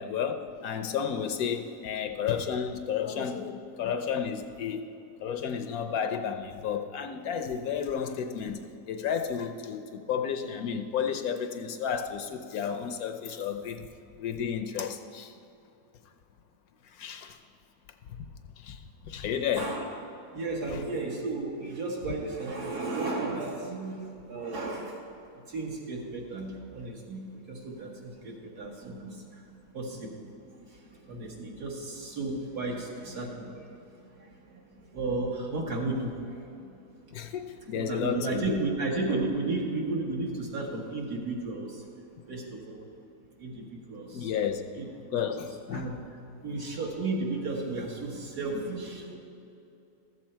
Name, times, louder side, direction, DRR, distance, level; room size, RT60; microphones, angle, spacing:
voice 1, 0.0-4.8 5.2-13.9 14.2-15.3 17.0-17.4 18.6-18.8 19.1-19.7 20.7-20.8 37.1-38.6 44.1-44.7 45.1-45.9, left 7 dB, 70° left, 6 dB, 1.0 m, -32 dB
voice 2, 19.6-19.9 20.3-25.0 25.5-29.2 29.7-30.3 30.7-36.7 37.7-41.8 42.3-42.8 43.4-44.3 44.8-44.9 45.3-45.4 45.7-46.0 46.4-49.1, right 2 dB, 70° right, -1 dB, 2.1 m, -34 dB
14.0 x 7.4 x 4.4 m, 2.7 s
omnidirectional pair, 1.7 m